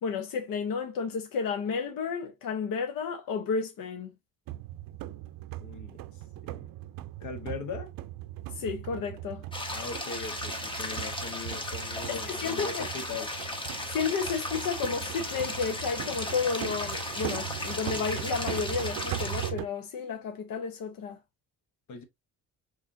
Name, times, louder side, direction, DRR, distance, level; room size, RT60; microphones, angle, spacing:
voice 1, 0.0-4.1 8.6-9.4 12.1-12.8 13.9-21.2, left 5 dB, 90° left, 0.9 m, -32 dB
sound 1, 4.5-19.7, right 14 dB, 90° right, 0.5 m, -39 dB
voice 2, 5.6-6.7 7.2-7.9 9.7-13.3 21.9-22.0, left 5 dB, 60° left, 1.3 m, -40 dB
sound 2, 9.5-19.5, left 1 dB, 15° left, 0.8 m, -36 dB
5.6 x 3.3 x 2.6 m
cardioid pair, 155°, 33 cm